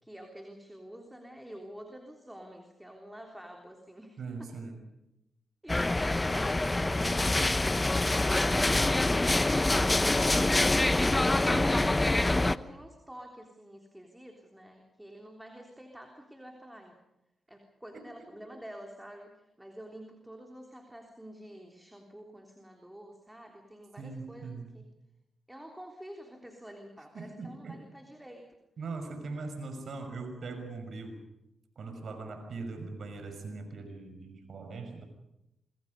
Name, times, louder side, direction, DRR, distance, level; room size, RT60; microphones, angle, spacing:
voice 1, 0.0-4.5 5.6-10.5 11.2-17.0 17.5-24.8 25.5-28.5 29.8-29.9, equal, 10° right, 2 dB, 3.5 m, -49 dB
voice 2, 4.2-4.8 11.5-12.0 24.0-24.7 27.1-27.8 28.8-31.2 31.8-35.1, right 3 dB, 65° right, 6 dB, 5.9 m, -40 dB
sound 1, 5.7-12.6, left 2 dB, 20° left, 0.9 m, -25 dB
26.0 x 24.0 x 5.4 m, 0.90 s
cardioid pair, 55°, 0 cm